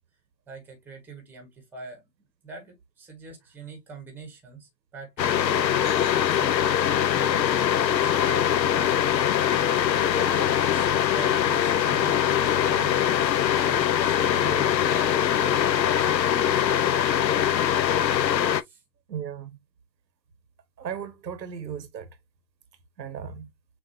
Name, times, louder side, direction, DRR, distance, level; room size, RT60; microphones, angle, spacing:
voice 1, 0.5-5.7 6.1-17.1 18.0-18.1 18.6-18.8, right 4 dB, 5° right, 0.9 m, -44 dB
sound 1, 5.2-18.6, left 9 dB, 85° left, 0.7 m, -22 dB
voice 2, 19.1-19.6 20.8-22.1 23.0-23.5, right 8 dB, 85° right, 1.1 m, -36 dB
6.5 x 2.5 x 2.5 m
hypercardioid pair, 140°, 50 cm